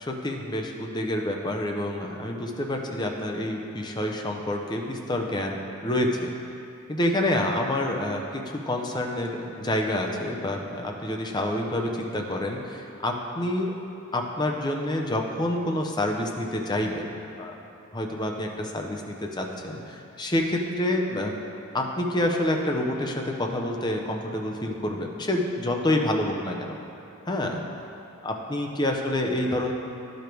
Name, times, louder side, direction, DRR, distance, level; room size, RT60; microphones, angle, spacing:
voice 1, 0.0-6.3 6.9-13.8 14.1-17.1 17.4-17.6 17.9-21.3 21.7-26.8 27.3-27.6 28.2-29.7, left 1 dB, 20° left, 2 dB, 0.6 m, -28 dB
11.0 x 5.1 x 4.5 m, 2.7 s
head